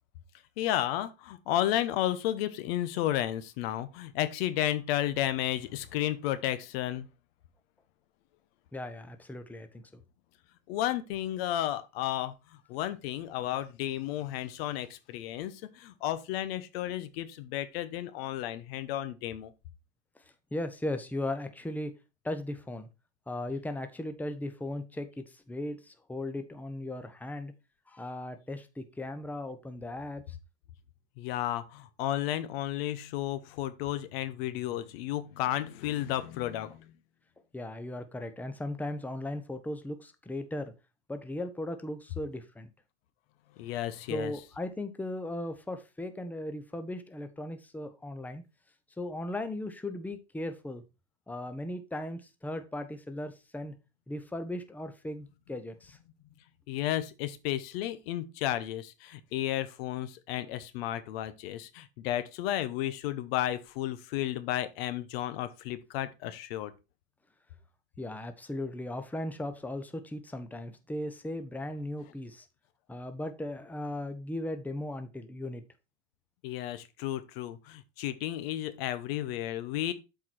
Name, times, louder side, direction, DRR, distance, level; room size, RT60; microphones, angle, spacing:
voice 1, 0.6-7.1 10.7-12.3 12.7-19.5 31.2-36.9 43.6-44.3 56.7-66.7 76.4-79.9, left 13 dB, 65° left, 1.0 m, -33 dB
voice 2, 8.7-10.0 20.5-21.9 22.2-22.9 23.3-27.5 27.9-30.2 37.5-40.7 41.1-42.7 44.1-48.4 49.0-50.8 51.3-53.8 54.1-56.0 68.0-72.4 72.9-75.6, left 1 dB, 5° left, 0.9 m, -37 dB
7.6 x 4.7 x 4.3 m
hypercardioid pair, 105°, 32 cm